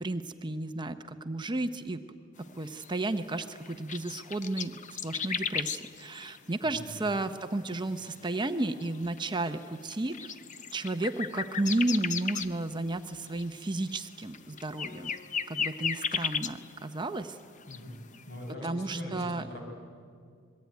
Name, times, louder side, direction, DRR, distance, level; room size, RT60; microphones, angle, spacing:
voice 1, 0.0-2.0 2.4-10.4 10.7-15.1 15.5-17.4 18.6-19.5, right 2 dB, 20° right, 8 dB, 0.7 m, -33 dB
sound 1, 2.4-17.1 17.4-18.2, left 6 dB, 35° left, 0.8 m, -37 dB
voice 2, 6.6-7.1 17.7-18.0 18.3-19.6, left 1 dB, 55° left, 1 dB, 5.8 m, -41 dB
25.5 x 21.5 x 9.4 m, 2.2 s
head